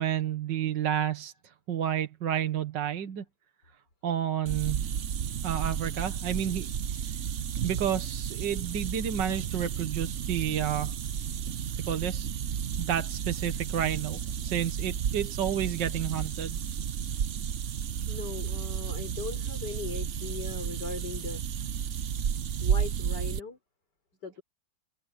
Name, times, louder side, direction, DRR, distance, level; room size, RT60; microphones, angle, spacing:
voice 1, 0.0-3.2 4.0-4.9 5.4-6.7 7.6-11.0 11.9-12.3 12.8-16.6, right 9 dB, 75° right, 1.9 m, -30 dB
sound 1, 4.5-23.4, right 8 dB, 50° right, 0.9 m, -32 dB
voice 2, 18.1-21.4 22.6-23.6 24.2-24.4, left 5 dB, 65° left, 5.2 m, -39 dB
open air
omnidirectional pair, 2.0 m